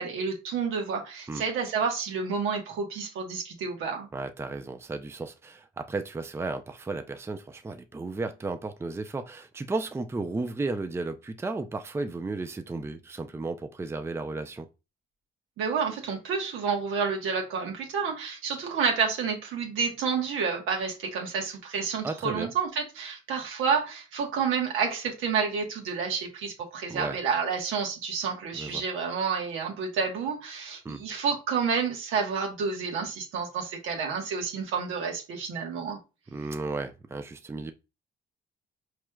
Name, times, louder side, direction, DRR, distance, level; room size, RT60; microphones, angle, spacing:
voice 1, 0.0-4.1 15.6-36.0, right 6 dB, 90° right, 1.2 m, -29 dB
voice 2, 4.1-14.7 22.0-22.5 26.9-27.2 28.5-28.8 30.8-31.0 36.3-37.7, right 3 dB, 15° right, 0.4 m, -34 dB
4.6 x 3.1 x 2.2 m
cardioid pair, 90°, 20 cm